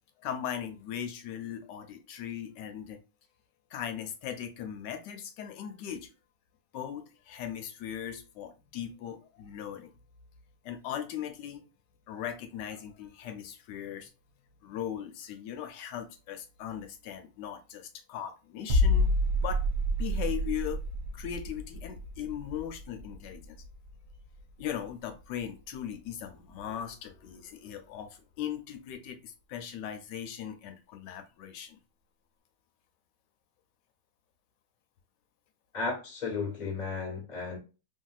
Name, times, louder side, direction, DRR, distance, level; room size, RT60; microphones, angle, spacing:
voice 1, 0.2-3.0 3.7-6.1 6.7-9.9 10.6-11.6 12.1-14.1 14.6-19.1 19.4-19.6 20.0-20.8 21.1-23.6 24.6-31.8, left 9 dB, 75° left, 1.2 m, -39 dB
sound 1, 18.7-24.4 24.7-24.9, left 1 dB, 70° right, 1.2 m, -29 dB
voice 2, 35.7-37.6, left 4 dB, 30° left, 1.0 m, -34 dB
3.2 x 2.7 x 2.3 m
omnidirectional pair, 1.9 m